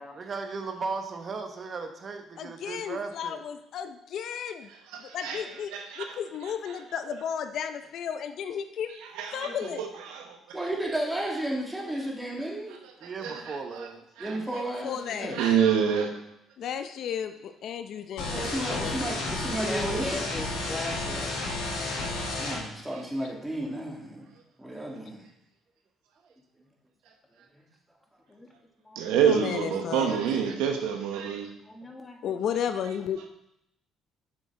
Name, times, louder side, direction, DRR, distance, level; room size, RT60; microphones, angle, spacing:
voice 1, 0.1-3.4 13.0-14.4, right 4 dB, 40° right, 6 dB, 0.9 m, -37 dB
voice 2, 2.4-4.7 5.0-8.9 9.3-9.9 14.4-15.4 16.6-19.0 29.2-30.2 32.2-33.3, left 8 dB, 65° left, 9 dB, 0.5 m, -34 dB
voice 3, 4.9-5.4 5.7-6.2 9.1-9.5 9.8-10.6 13.0-13.9 14.2-14.4 15.3-16.1 22.0-22.1 28.9-31.5, right 8 dB, 90° right, 4 dB, 1.0 m, -27 dB
voice 4, 10.5-12.8 14.2-15.5 18.3-20.3 22.4-24.2 24.6-25.2, right 1 dB, 10° right, -2 dB, 2.2 m, -33 dB
sound 1, 18.2-22.6, left 2 dB, 85° left, 3.0 m, -32 dB
voice 5, 19.6-21.3 28.3-28.5 28.8-29.2 31.7-32.2, left 2 dB, 20° left, 3 dB, 1.1 m, -38 dB
7.4 x 6.3 x 3.7 m, 0.80 s
cardioid pair, 90°, 0 cm